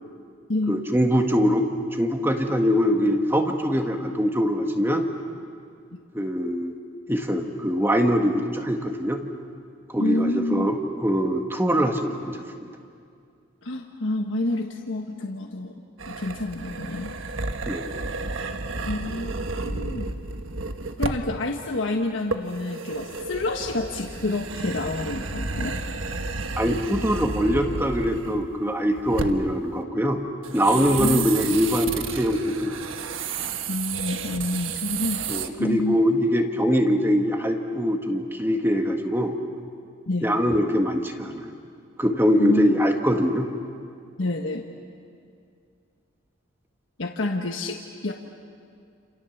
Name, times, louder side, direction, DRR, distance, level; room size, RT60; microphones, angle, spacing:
voice 1, 0.7-5.1 6.1-6.7 7.1-9.2 9.9-12.7 17.7-17.9 26.6-30.2 30.5-32.8 35.3-39.3 40.2-41.5 42.0-43.5, equal, 10° right, 4 dB, 1.6 m, -23 dB
voice 2, 10.0-10.7 13.6-15.7 16.1-17.1 18.8-19.3 19.6-20.1 21.0-25.8 30.7-31.3 33.7-35.2 35.6-36.2 40.1-40.3 42.4-42.7 44.2-44.6 47.0-48.1, left 2 dB, 75° left, 2 dB, 1.4 m, -28 dB
sound 1, 16.0-21.4 22.3-28.6 29.0-29.6 30.4-35.5, right 4 dB, 85° right, 1.3 m, -32 dB
29.0 x 28.5 x 7.2 m, 2.3 s
head